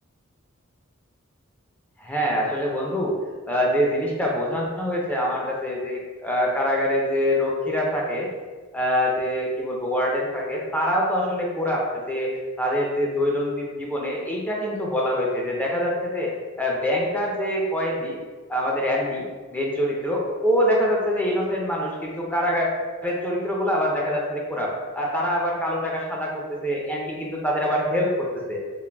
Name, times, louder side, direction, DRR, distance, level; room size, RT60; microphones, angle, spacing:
voice 1, 2.0-8.3 8.7-12.3 12.6-16.3 16.6-18.2 18.5-22.7 23.0-28.6, equal, 10° left, -2 dB, 0.5 m, -25 dB
3.8 x 2.5 x 3.4 m, 1.4 s
head